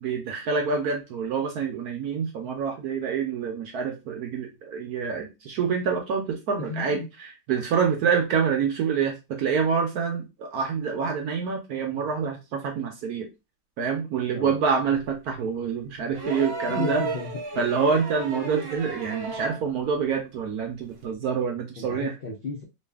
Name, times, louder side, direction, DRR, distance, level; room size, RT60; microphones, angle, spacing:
voice 1, 0.0-13.3 13.8-17.1 17.6-22.1, right 6 dB, 70° right, 3 dB, 0.9 m, -27 dB
voice 2, 6.6-7.1 14.3-14.5 16.6-17.4 21.8-22.6, left 3 dB, 85° left, -1 dB, 0.5 m, -33 dB
sound 1, 16.1-19.7 21.0-21.1, right 3 dB, 45° right, 0.8 m, -33 dB
3.1 x 2.6 x 3.3 m, 0.25 s
omnidirectional pair, 2.1 m